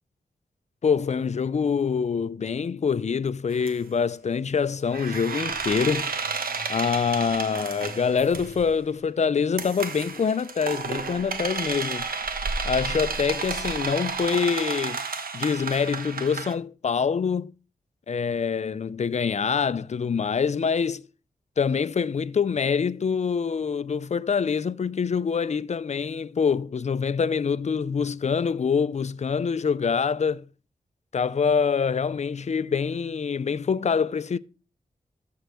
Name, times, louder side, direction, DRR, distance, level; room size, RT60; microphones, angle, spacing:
voice 1, 0.8-6.1 6.7-12.1 12.6-15.0 15.3-17.5 18.1-21.0 21.6-30.5 31.1-34.4, left 6 dB, 50° left, 0.5 m, -25 dB
sound 1, 3.5-3.7 4.9-8.7 9.6-16.5, right 5 dB, 80° right, 1.3 m, -31 dB
14.0 x 4.7 x 6.3 m
wide cardioid pair, 80°, 15 cm